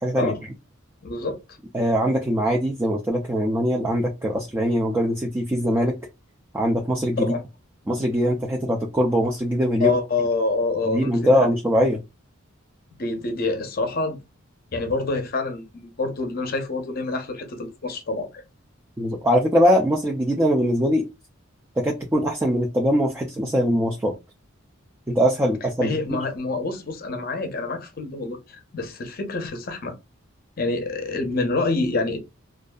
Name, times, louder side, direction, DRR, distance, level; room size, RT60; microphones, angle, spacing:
voice 1, 0.0-0.3 1.7-5.9 6.5-7.3 7.9-10.0 10.9-12.0 19.0-21.1 21.8-24.1 25.1-26.0, equal, 10° right, 0.3 m, -22 dB
voice 2, 1.0-1.4 7.2-7.4 9.8-11.5 13.0-14.2 14.7-18.4 25.8-30.0 30.6-32.2, left 3 dB, 45° left, 0.6 m, -27 dB
2.6 x 2.4 x 2.2 m
head